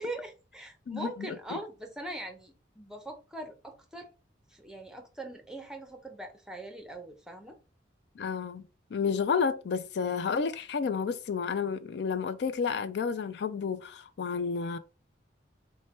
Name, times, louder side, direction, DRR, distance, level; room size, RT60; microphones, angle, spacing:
voice 1, 0.0-4.1 4.5-7.6, right 1 dB, 5° right, 0.6 m, -41 dB
voice 2, 0.9-1.6 8.2-8.6 8.9-14.8, left 6 dB, 60° left, 0.3 m, -31 dB
4.4 x 2.2 x 4.3 m
head